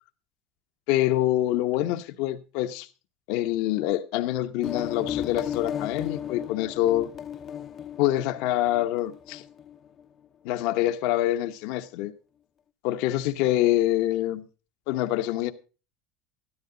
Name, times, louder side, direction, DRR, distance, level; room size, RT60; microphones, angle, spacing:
voice 1, 0.9-2.9 3.3-7.1 8.0-9.4 10.4-12.1 12.8-14.5 14.9-15.5, left 14 dB, 65° left, 1.0 m, -25 dB
sound 1, 4.6-10.0, left 9 dB, 35° left, 0.6 m, -35 dB
12.5 x 12.5 x 3.9 m
supercardioid pair, 130°, 0 cm